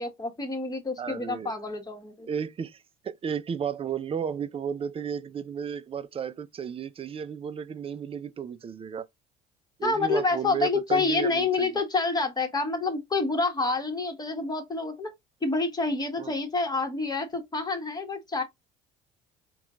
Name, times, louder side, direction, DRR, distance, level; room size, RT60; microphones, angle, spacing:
voice 1, 0.0-2.3 9.8-15.1 15.4-18.4, left 3 dB, 20° left, 1.5 m, -28 dB
voice 2, 1.0-1.5 2.3-9.1 9.8-11.7 16.2-16.3, right 7 dB, 30° right, 0.5 m, -33 dB
4.3 x 2.4 x 3.7 m
supercardioid pair, 75°, 19 cm